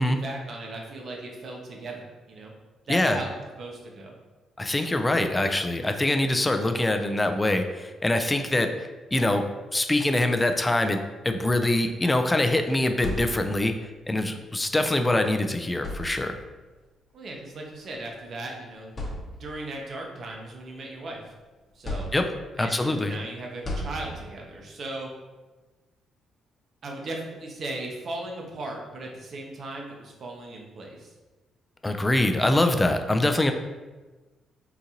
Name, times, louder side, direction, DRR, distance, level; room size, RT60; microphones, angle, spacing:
voice 1, 0.0-2.5 2.9-4.1 17.1-18.9 19.4-21.3 21.7-22.1 22.6-25.1 26.8-31.1, right 2 dB, 55° right, 0 dB, 0.7 m, -37 dB
voice 2, 2.9-3.2 4.6-9.5 9.7-13.7 14.1-16.3 22.1-22.3 22.6-23.1 31.8-33.5, left 1 dB, 15° left, 6 dB, 0.3 m, -24 dB
sound 1, 13.0-13.8 15.1-15.2 15.7-16.6 17.7-17.9 18.4-18.5 18.9-19.7 20.2-21.3 21.8-22.6 23.6-24.5, left 1 dB, 35° left, 0.9 m, -36 dB
3.9 x 2.5 x 2.8 m, 1.2 s
cardioid pair, 90°, 0 cm